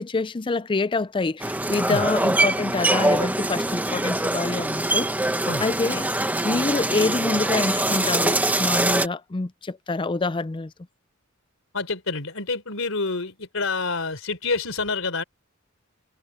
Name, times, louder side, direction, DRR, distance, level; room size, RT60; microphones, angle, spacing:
voice 1, 0.0-5.3 5.6-6.1 6.4-10.7, left 3 dB, 25° left, 0.4 m, -26 dB
sound 1, 1.4-9.1, right 1 dB, 10° right, 1.0 m, -23 dB
voice 2, 11.7-15.2, left 3 dB, 80° left, 3.7 m, -27 dB
head